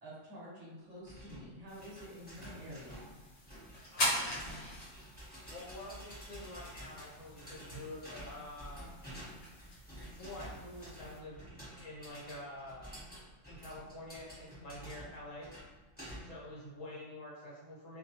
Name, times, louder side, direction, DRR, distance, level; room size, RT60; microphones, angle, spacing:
voice 1, 0.0-3.0, equal, 40° right, -7 dB, 0.7 m, -49 dB
sound 1, 1.1-16.5, equal, 10° left, 0.9 m, -50 dB
sound 2, 1.7-11.2, left 1 dB, 60° left, 1.0 m, -42 dB
voice 2, 3.9-4.4 5.5-8.9 10.0-11.4 11.7-12.9 13.5-15.5 16.2-18.0, left 1 dB, 80° left, -5 dB, 1.1 m, -47 dB
2.2 x 2.2 x 2.8 m, 1.2 s
omnidirectional pair, 1.3 m